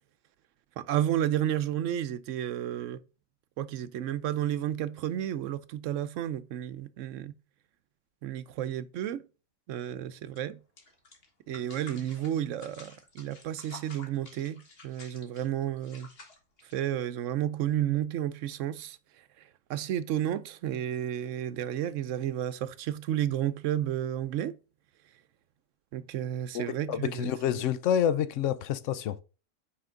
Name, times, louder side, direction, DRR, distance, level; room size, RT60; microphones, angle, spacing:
voice 1, 0.8-3.0 3.6-7.3 8.2-9.2 9.7-10.6 11.5-16.1 16.7-19.0 19.7-24.5 25.9-27.6, right 11 dB, 80° right, 1.0 m, -32 dB
sound 1, 10.3-10.4 10.8-17.2, left 3 dB, 50° left, 1.7 m, -51 dB
voice 2, 26.5-29.2, left 9 dB, 75° left, 1.0 m, -28 dB
5.8 x 5.0 x 3.8 m
omnidirectional pair, 1.3 m